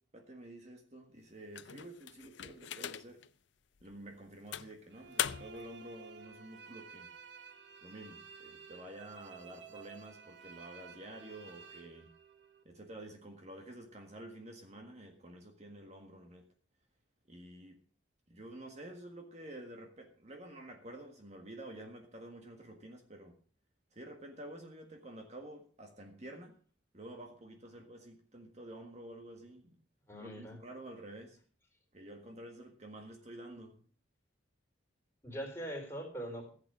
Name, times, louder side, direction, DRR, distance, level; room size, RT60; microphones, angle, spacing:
voice 1, 0.1-3.2 3.8-7.1 7.8-12.1 12.7-16.4 17.3-17.8 18.3-23.3 23.9-26.5 26.9-29.8 30.2-31.4 31.9-33.8, right 1 dB, 35° right, 3 dB, 1.7 m, -50 dB
sound 1, 1.5-3.3 3.8-3.9 4.5-5.7, left 10 dB, 65° left, 0.6 m, -40 dB
sound 2, 4.9-12.6, right 5 dB, 60° right, 1.3 m, -53 dB
voice 2, 30.1-30.6 35.2-36.5, right 1 dB, 15° left, 0 dB, 4.1 m, -42 dB
15.0 x 8.3 x 6.2 m, 0.43 s
head